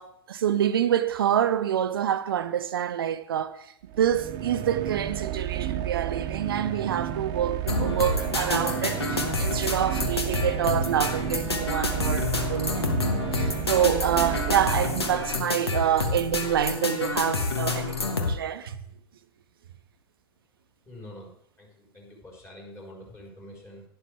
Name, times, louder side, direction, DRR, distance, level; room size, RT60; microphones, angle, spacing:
voice 1, 0.0-3.7 4.0-18.8, right 10 dB, 65° right, 0.8 m, -27 dB
sound 1, 3.9-15.7, right 11 dB, 35° right, 1.0 m, -32 dB
sound 2, 7.7-18.3, left 3 dB, 80° left, 1.3 m, -28 dB
voice 2, 20.8-23.8, left 1 dB, 20° left, 4.4 m, -46 dB
11.5 x 11.0 x 3.4 m
figure-of-eight pair, 90°, 13 cm